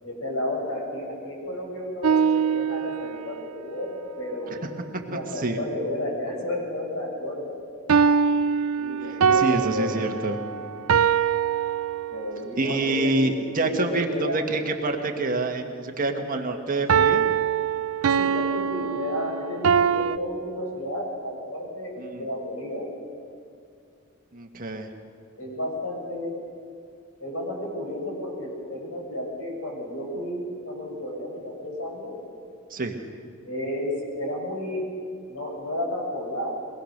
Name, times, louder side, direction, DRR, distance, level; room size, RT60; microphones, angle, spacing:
voice 1, 0.0-4.5 4.8-7.6 8.8-10.1 12.1-13.1 13.6-14.4 18.1-21.9 22.2-22.9 25.4-26.3 27.2-32.1 33.4-34.8 35.3-36.5, left 1 dB, 70° left, -1 dB, 6.7 m, -32 dB
sound 1, 2.0-3.4 7.9-12.4 16.9-20.2, right 7 dB, 80° right, 0.5 m, -23 dB
voice 2, 4.9-5.6 9.0-10.4 12.6-17.3 22.0-22.3 24.3-24.9 32.7-33.0, right 2 dB, 40° right, 4 dB, 1.6 m, -27 dB
23.0 x 20.0 x 6.7 m, 2.4 s
head